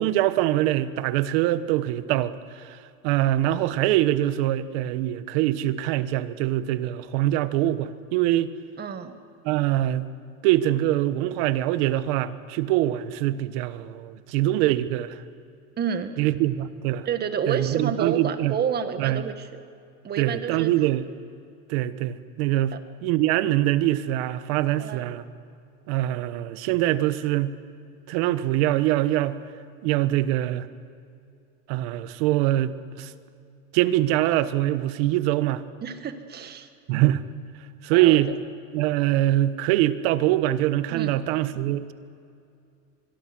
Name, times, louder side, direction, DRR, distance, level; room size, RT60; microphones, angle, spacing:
voice 1, 0.0-2.8 3.0-8.5 9.4-10.1 10.4-15.2 16.2-17.1 17.5-18.5 19.0-19.2 20.2-21.1 21.7-22.7 23.0-25.2 25.9-27.6 28.1-29.4 29.8-30.7 31.7-33.1 33.7-35.6 36.9-37.2 37.8-38.3 38.7-41.9, right 14 dB, 80° right, 13 dB, 1.3 m, -23 dB
voice 2, 8.8-9.2 15.8-16.1 17.1-19.6 20.0-20.7 24.8-25.1 35.8-36.7 37.9-38.2 40.9-41.2, right 7 dB, 35° right, 8 dB, 1.8 m, -29 dB
25.0 x 22.5 x 6.2 m, 2.5 s
cardioid pair, 140°, 30 cm